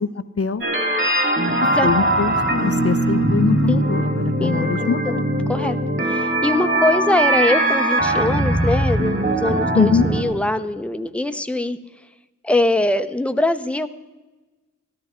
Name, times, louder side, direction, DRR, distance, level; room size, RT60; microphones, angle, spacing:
sound 1, 0.6-10.2, right 1 dB, 40° right, 2.3 m, -20 dB
voice 1, 1.8-5.2 9.7-10.1, left 5 dB, 50° left, 12 dB, 0.6 m, -22 dB
voice 2, 4.4-5.2 5.5-11.8 12.4-13.9, left 2 dB, 5° left, 9 dB, 0.7 m, -22 dB
13.0 x 12.0 x 4.3 m, 1.2 s
wide cardioid pair, 55°, 31 cm